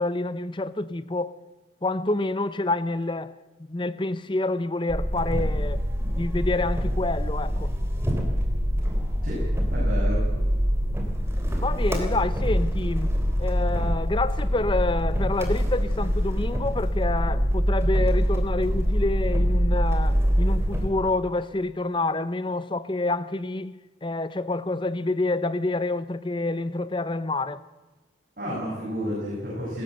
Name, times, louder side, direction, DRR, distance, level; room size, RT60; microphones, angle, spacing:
voice 1, 0.0-1.4 1.8-5.8 6.2-7.7 11.6-27.6, left 2 dB, 25° left, 0.7 m, -28 dB
sound 1, 4.9-20.9, equal, 15° right, 3.2 m, -24 dB
voice 2, 9.7-10.2 28.4-29.8, equal, 45° right, 7.3 m, -31 dB
20.0 x 17.0 x 7.9 m
head